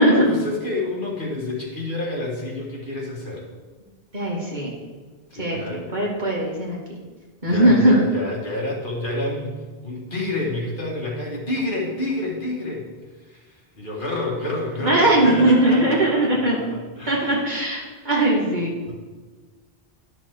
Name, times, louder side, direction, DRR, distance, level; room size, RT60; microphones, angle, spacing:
voice 1, 0.0-3.4 5.3-5.9 7.4-9.6 9.8-12.9 13.3-13.4 13.8-17.5 17.8-17.9 18.9-19.0, left 2 dB, 55° left, -3 dB, 1.9 m, -29 dB
voice 2, 4.1-4.7 5.3-5.6 5.9-6.8 7.4-7.9 14.8-16.6 17.1-18.7, right 1 dB, 45° right, -5 dB, 2.3 m, -19 dB
12.0 x 6.5 x 3.6 m, 1.3 s
omnidirectional pair, 1.0 m